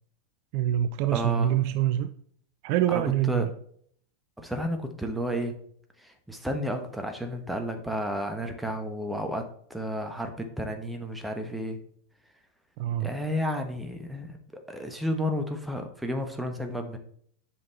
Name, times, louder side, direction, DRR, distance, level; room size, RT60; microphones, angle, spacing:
voice 1, 0.5-2.2 2.6-3.5 12.8-13.1, right 12 dB, 45° right, 0.4 m, -25 dB
voice 2, 1.1-1.5 2.9-3.5 4.4-5.6 6.0-11.8 13.0-17.0, equal, 5° right, 1.2 m, -32 dB
7.6 x 5.5 x 4.1 m
figure-of-eight pair, 90°, 0 cm